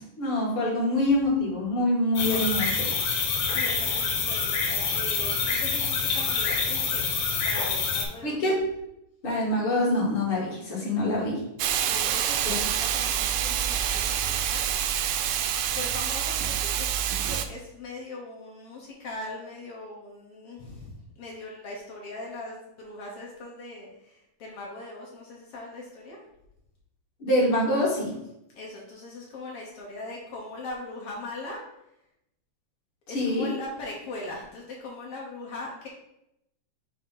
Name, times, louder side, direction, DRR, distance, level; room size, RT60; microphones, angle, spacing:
voice 1, 0.0-2.9 8.2-8.6 9.2-11.4 12.5-12.6 27.2-28.1 33.1-33.5, left 1 dB, 45° left, -4 dB, 2.2 m, -25 dB
sound 1, 2.2-8.1, left 5 dB, 90° left, 2.8 m, -26 dB
voice 2, 3.5-7.0 7.4-8.5 11.8-14.6 15.6-26.2 28.5-31.6 33.1-35.9, left 2 dB, 70° left, -2 dB, 1.4 m, -40 dB
Hiss, 11.6-17.5, right 10 dB, 80° right, 2.0 m, -27 dB
7.1 x 2.8 x 5.4 m, 0.82 s
omnidirectional pair, 3.9 m